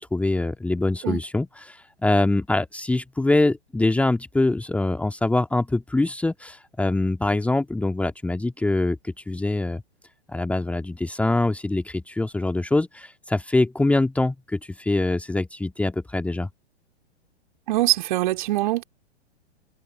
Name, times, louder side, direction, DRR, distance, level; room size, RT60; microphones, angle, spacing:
voice 1, 0.0-9.8 10.3-16.5, left 2 dB, 5° left, 1.9 m, -24 dB
voice 2, 17.7-18.8, right 16 dB, 45° right, 3.6 m, -23 dB
figure-of-eight pair, 110°, 34 cm